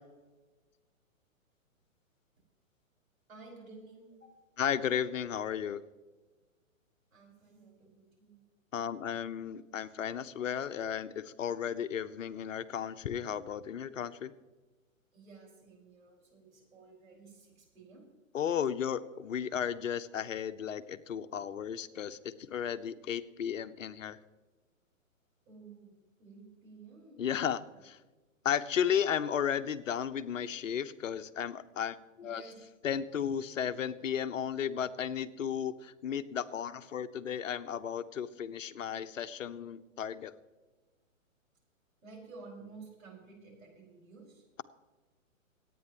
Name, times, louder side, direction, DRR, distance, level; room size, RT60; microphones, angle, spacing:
voice 1, 3.3-4.3 7.1-8.4 15.1-18.1 25.5-25.9 26.2-27.8 32.3-32.6 42.0-44.4, right 4 dB, 75° right, -1 dB, 5.2 m, -53 dB
voice 2, 4.6-5.8 8.7-14.3 18.3-24.2 27.2-28.0 28.4-32.4 32.8-40.3, left 8 dB, 65° left, 12 dB, 0.9 m, -34 dB
25.5 x 9.4 x 3.0 m, 1.3 s
hypercardioid pair, 125°, 41 cm